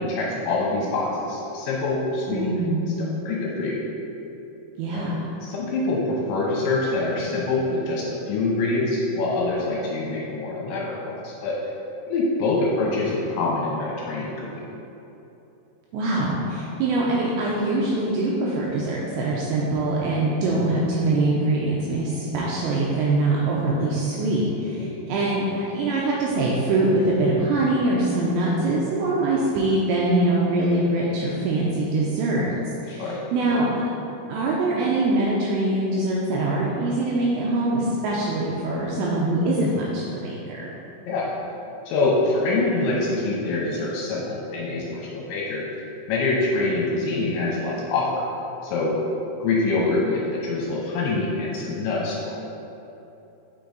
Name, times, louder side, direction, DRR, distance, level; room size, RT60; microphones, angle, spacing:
voice 1, 0.0-3.8 4.9-5.1 5.4-11.6 12.1-14.5 24.8-24.9 32.9-33.2 41.0-41.3 41.9-45.7 46.1-48.2 48.6-49.0 49.4-52.5, left 2 dB, 80° left, -4 dB, 2.8 m, -25 dB
voice 2, 2.3-2.9 4.8-5.3 15.9-32.5 32.8-33.8 34.3-40.7, right 2 dB, 85° right, -4 dB, 2.6 m, -23 dB
6.8 x 6.1 x 3.9 m, 2.9 s
omnidirectional pair, 5.8 m